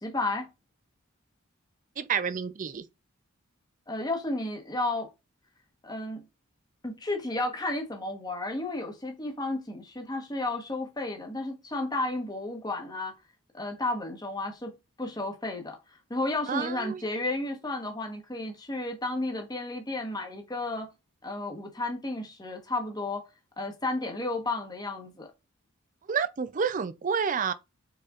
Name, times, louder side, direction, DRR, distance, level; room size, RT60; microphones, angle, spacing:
voice 1, 0.0-0.5 3.9-5.1 5.8-6.2 6.8-13.1 13.5-14.7 15.0-15.8 16.1-20.9 21.2-23.3 23.6-25.3, left 2 dB, 20° left, 1.1 m, -32 dB
voice 2, 2.0-2.8 16.5-17.1 26.1-27.5, right 6 dB, 35° right, 0.4 m, -29 dB
5.0 x 4.1 x 2.4 m
head